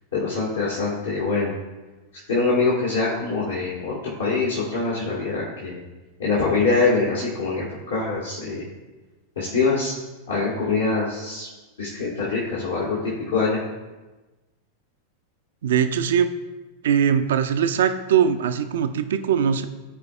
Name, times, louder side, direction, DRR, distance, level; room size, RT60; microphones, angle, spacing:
voice 1, 0.1-1.5 2.3-3.9 4.2-5.8 6.2-8.6 9.3-9.9 10.3-11.5 11.8-13.0 13.3-13.6, left 4 dB, 65° left, -7 dB, 1.7 m, -24 dB
voice 2, 15.6-16.3 16.8-19.7, right 8 dB, 60° right, 9 dB, 0.5 m, -21 dB
13.5 x 4.7 x 2.3 m, 1.2 s
figure-of-eight pair, 90°, 0 cm